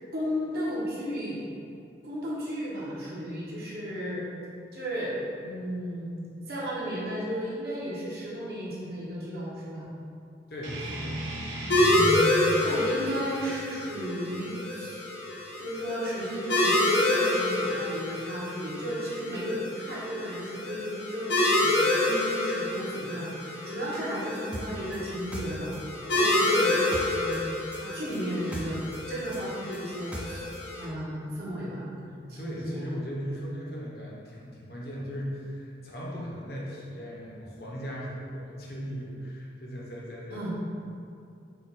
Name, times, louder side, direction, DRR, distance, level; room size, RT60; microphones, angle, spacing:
voice 1, 0.1-1.5 2.0-4.3 4.7-5.2 5.4-6.1 6.5-9.9 11.8-12.2 12.5-15.0 15.6-25.7 26.1-27.4 27.7-28.8 29.1-30.5 30.7-32.9 40.3-40.5, equal, 55° right, -7 dB, 0.9 m, -34 dB
voice 2, 10.5-11.2 32.4-40.5, equal, 55° left, -4 dB, 0.7 m, -38 dB
sound 1, 10.6-15.7, equal, 85° right, 0.6 m, -38 dB
sound 2, 11.7-30.8, left 1 dB, 90° left, 0.7 m, -28 dB
sound 3, 24.5-27.4 27.7-30.6, equal, 5° right, 0.3 m, -40 dB
4.2 x 2.2 x 4.0 m, 2.4 s
head